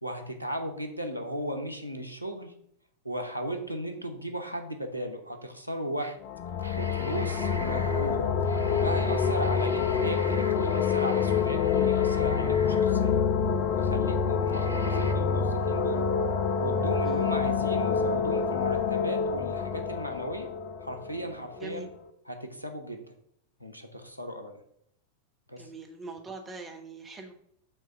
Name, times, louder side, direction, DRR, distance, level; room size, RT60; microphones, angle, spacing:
voice 1, 0.0-2.5 3.0-6.1 6.8-8.2 8.7-13.2 13.8-16.0 16.6-20.5 20.8-21.9 22.3-23.1 23.6-24.6 25.5-25.7, equal, 90° left, 5 dB, 0.9 m, -36 dB
sound 1, 6.0-6.2 6.5-13.3 13.9-14.0 14.5-15.1, right 2 dB, 80° right, 0.5 m, -44 dB
sound 2, 6.2-21.8, left 6 dB, 45° left, 0.7 m, -27 dB
voice 2, 21.6-21.9 25.6-27.3, right 3 dB, 20° right, 3 dB, 1.2 m, -42 dB
6.8 x 3.4 x 5.8 m, 0.70 s
figure-of-eight pair, 90°, 0 cm